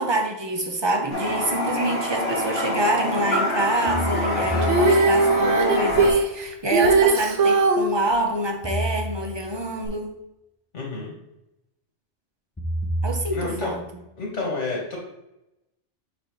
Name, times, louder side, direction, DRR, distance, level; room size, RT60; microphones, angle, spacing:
voice 1, 0.0-10.2 13.0-13.8, right 1 dB, 25° right, 4 dB, 0.7 m, -26 dB
Toilet flush, 1.1-6.1, left 1 dB, 55° left, 2.0 m, -26 dB
sound 1, 1.3-1.4 3.9-5.5 8.6-9.7 12.6-13.9, right 1 dB, 15° left, 0.4 m, -30 dB
Female singing, 4.6-7.9 9.9-10.0, right 3 dB, 75° right, 1.1 m, -19 dB
voice 2, 10.7-11.1 13.3-13.7 14.2-15.0, left 3 dB, 80° left, -2 dB, 2.1 m, -29 dB
7.7 x 4.2 x 3.1 m, 0.88 s
omnidirectional pair, 1.2 m